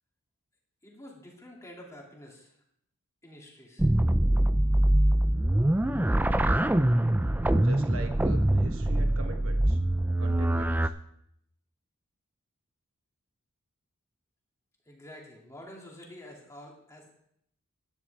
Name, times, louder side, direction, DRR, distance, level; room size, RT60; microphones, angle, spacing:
voice 1, 0.8-2.5 3.2-3.9 14.9-17.1, left 1 dB, 15° left, -1 dB, 2.5 m, -48 dB
sound 1, 3.8-10.9, right 1 dB, 10° right, 0.4 m, -24 dB
voice 2, 7.3-9.8 10.2-10.9, right 1 dB, 65° right, 5 dB, 1.2 m, -42 dB
13.5 x 11.0 x 3.5 m, 0.72 s
head